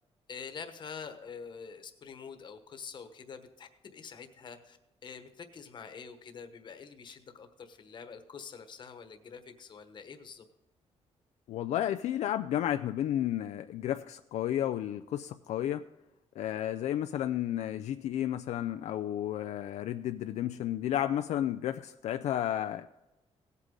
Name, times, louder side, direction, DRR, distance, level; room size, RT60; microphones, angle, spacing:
voice 1, 0.3-10.4, left 6 dB, 40° left, 8 dB, 1.2 m, -46 dB
voice 2, 11.5-15.8 16.4-22.9, left 11 dB, 75° left, 9 dB, 0.4 m, -32 dB
17.0 x 8.2 x 3.8 m, 0.99 s
cardioid pair, 155°, 11 cm